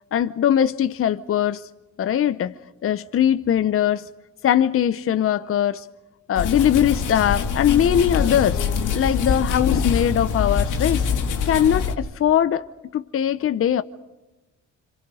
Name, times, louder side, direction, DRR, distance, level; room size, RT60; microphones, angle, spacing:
voice 1, 0.1-1.6 2.0-4.1 4.4-5.9 6.3-8.6 8.9-11.0 11.4-12.7 12.9-13.8, left 10 dB, 45° left, 0.7 m, -21 dB
sound 1, 6.3-11.9, left 6 dB, 90° left, 2.2 m, -24 dB
27.5 x 25.5 x 4.9 m
cardioid pair, 90°, 30 cm